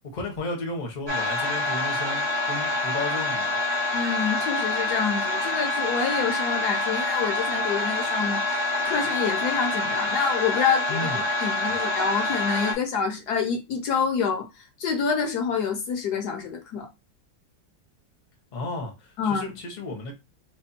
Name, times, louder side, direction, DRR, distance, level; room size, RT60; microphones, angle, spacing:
voice 1, 0.0-3.6 10.9-11.2 18.5-20.1, left 2 dB, 35° left, 0.8 m, -34 dB
sound 1, 1.1-12.7, left 2 dB, 25° right, 0.6 m, -26 dB
voice 2, 3.9-11.1 11.4-14.5 14.8-16.9 19.2-19.5, left 6 dB, 65° left, 1.2 m, -27 dB
3.3 x 2.2 x 4.1 m
omnidirectional pair, 2.0 m